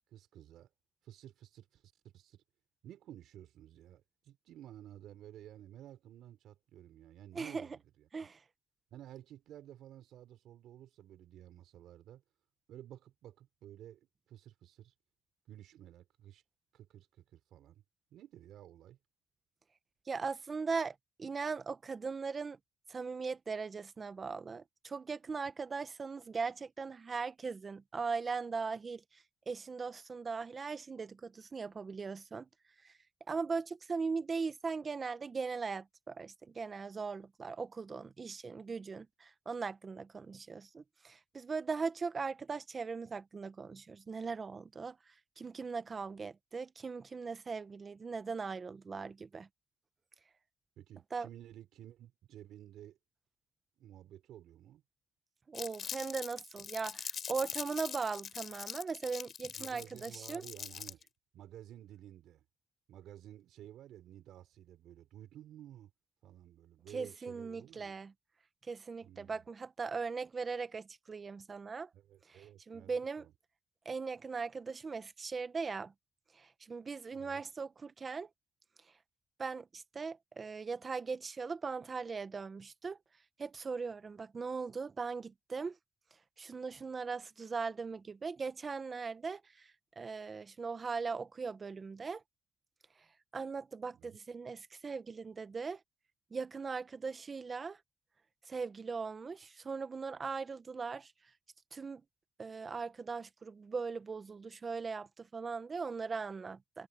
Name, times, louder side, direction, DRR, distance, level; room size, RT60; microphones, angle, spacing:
voice 1, 0.1-0.7 1.0-1.8 2.1-2.4 2.8-7.8 8.9-12.2 12.7-14.9 15.5-16.4 16.7-17.8 18.1-19.0 50.8-53.0 53.8-54.8 59.6-61.1 61.3-62.4 62.9-65.9 66.2-67.9 69.0-69.4 71.9-73.3 77.1-77.4 93.9-94.2, right 12 dB, 80° right, 5.5 m, -53 dB
voice 2, 7.3-7.7 8.1-8.4 20.1-22.6 22.9-32.5 32.8-32.9 33.3-49.5 51.1-51.3 55.5-60.4 66.9-68.1 68.6-71.9 72.3-73.3 73.8-75.9 76.3-78.3 79.4-83.0 83.4-85.8 86.4-92.2 93.3-95.8 96.3-97.8 98.5-101.1 101.7-102.0 102.4-106.9, right 4 dB, 35° right, 1.0 m, -39 dB
Crumpling crinkling, 55.5-61.1, left 7 dB, 55° left, 5.4 m, -43 dB
cardioid pair, 90°, 0 cm